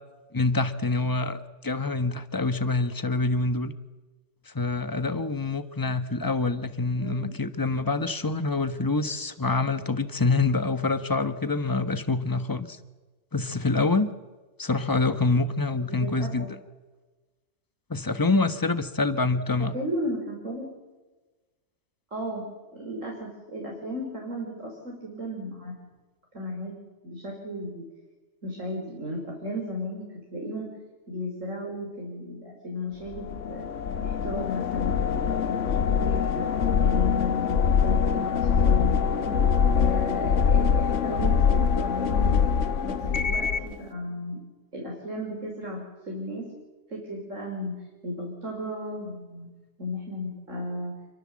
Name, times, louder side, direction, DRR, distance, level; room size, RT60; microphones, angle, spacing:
voice 1, 0.3-3.7 4.5-12.8 13.3-14.1 14.6-16.5 17.9-19.7, left 3 dB, 15° left, 10 dB, 1.2 m, -26 dB
voice 2, 7.0-7.3 15.9-16.5 19.7-20.7 22.1-22.4 22.7-25.8 26.3-26.7 27.0-27.9 28.4-30.7 31.1-33.6 34.0-36.5 36.8-39.3 39.7-42.4 42.8-44.4 44.7-46.5 46.9-49.5 49.8-51.0, left 1 dB, 90° right, 0 dB, 5.5 m, -34 dB
sound 1, 33.1-43.7, left 6 dB, 75° left, 1.4 m, -24 dB
28.0 x 23.5 x 7.6 m, 1.2 s
omnidirectional pair, 1.3 m